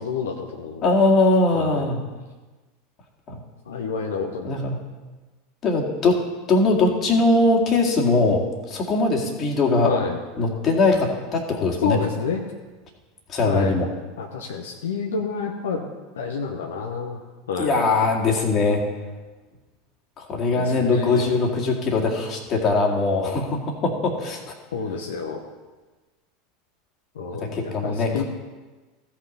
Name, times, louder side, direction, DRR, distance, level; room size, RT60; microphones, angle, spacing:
voice 1, 0.0-0.9 1.5-1.8 3.7-4.6 9.8-10.2 11.8-12.4 13.4-13.7 14.2-15.9 16.1-17.2 17.5-17.8 20.6-21.4 24.7-25.4 27.1-28.2, left 5 dB, 70° left, 1 dB, 0.9 m, -29 dB
voice 2, 0.8-2.0 3.3-3.4 4.4-4.8 5.6-6.2 6.5-9.9 10.4-12.0 13.3-13.9 17.6-18.8 20.2-24.5 27.4-28.2, left 3 dB, 35° left, 0 dB, 2.1 m, -21 dB
16.0 x 5.9 x 4.2 m, 1.3 s
figure-of-eight pair, 80°, 0 cm